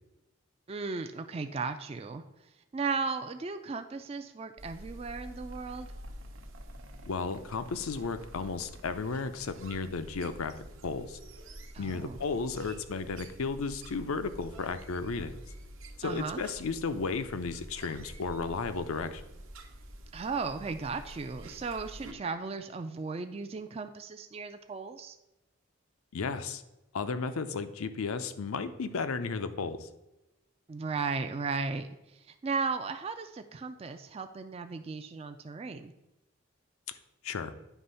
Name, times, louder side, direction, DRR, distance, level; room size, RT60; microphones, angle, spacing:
voice 1, 0.7-2.2 2.7-5.9 11.7-12.2 16.0-16.4 20.1-25.2 30.7-31.9 32.3-35.9, right 4 dB, 30° right, 8 dB, 0.3 m, -35 dB
sound 1, 4.6-22.1, right 1 dB, 65° right, 0.9 m, -48 dB
voice 2, 7.0-10.5 10.8-11.2 11.8-15.4 16.0-19.2 26.1-26.6 26.9-29.9 36.9-37.0 37.2-37.5, left 4 dB, 80° left, 11 dB, 0.6 m, -34 dB
9.2 x 3.4 x 5.5 m, 0.95 s
head